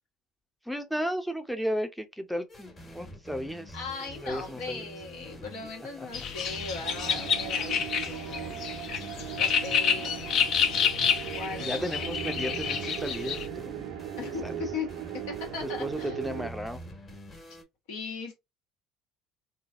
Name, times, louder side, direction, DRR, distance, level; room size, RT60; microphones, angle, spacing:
voice 1, 0.7-3.8 4.2-4.8 6.0-6.1 11.6-13.9 14.2-14.6 15.8-16.8, equal, ahead, 0.6 m, -34 dB
sound 1, 2.5-17.6, equal, 30° left, 1.4 m, -46 dB
voice 2, 3.7-8.6 9.4-10.2 11.3-11.9 14.2-14.4 14.7-14.9 15.3-16.2 17.9-18.3, left 4 dB, 75° left, 1.3 m, -38 dB
sound 2, 6.1-13.5, left 7 dB, 55° left, 0.6 m, -29 dB
sound 3, 6.8-16.5, right 13 dB, 70° right, 0.4 m, -38 dB
3.8 x 2.3 x 2.5 m
hypercardioid pair, 70°, 0 cm